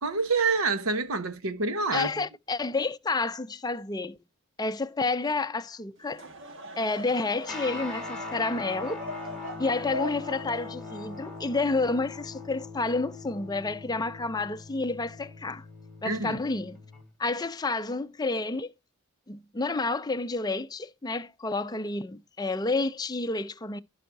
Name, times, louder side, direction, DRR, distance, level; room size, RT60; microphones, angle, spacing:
voice 1, 0.0-2.2 16.0-16.4, right 4 dB, 75° right, 1.1 m, -27 dB
voice 2, 1.9-4.2 4.6-6.2 6.8-9.0 9.6-15.6 16.0-16.8 17.2-18.7 19.3-23.8, left 3 dB, 20° left, 0.5 m, -30 dB
Laughter / Crowd, 6.0-12.4, equal, 55° right, 1.5 m, -42 dB
Guitar, 7.4-17.1, left 3 dB, 5° left, 4.3 m, -41 dB
16.0 x 5.6 x 2.6 m
head